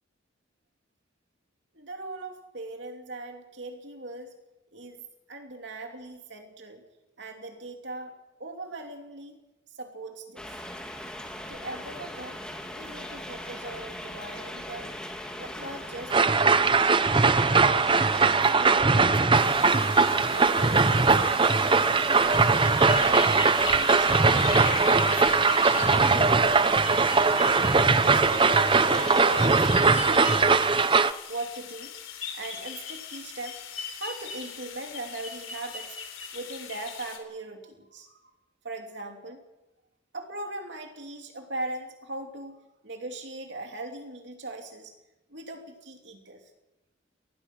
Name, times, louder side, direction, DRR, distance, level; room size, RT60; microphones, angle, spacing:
voice 1, 1.7-4.3 4.7-6.8 7.2-9.4 9.7-10.6 11.5-12.4 12.7-14.9 15.4-17.1 17.5-19.6 20.3-22.5 23.0-27.1 28.0-30.9 31.3-31.9 32.3-33.6 33.9-36.0 36.3-38.2 38.6-39.4 40.1-44.9 45.3-46.5, right 2 dB, 60° right, 3 dB, 3.0 m, -40 dB
sound 1, 10.4-29.5, left 1 dB, 5° left, 2.8 m, -39 dB
sound 2, 16.1-31.1, right 4 dB, 25° right, 0.7 m, -21 dB
sound 3, 19.3-37.2, left 6 dB, 85° left, 3.7 m, -39 dB
26.0 x 20.0 x 6.3 m, 0.99 s
head